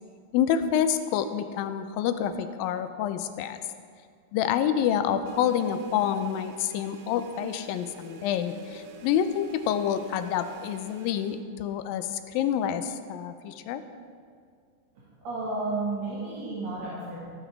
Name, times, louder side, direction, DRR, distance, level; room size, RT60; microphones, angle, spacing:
voice 1, 0.3-3.6 4.3-13.8, left 9 dB, 85° left, 10 dB, 2.3 m, -27 dB
sound 1, 5.3-11.4, right 4 dB, 75° right, 2.6 m, -48 dB
voice 2, 15.2-17.2, right 3 dB, 55° right, -7 dB, 2.5 m, -32 dB
15.5 x 5.5 x 4.6 m, 2.2 s
omnidirectional pair, 4.1 m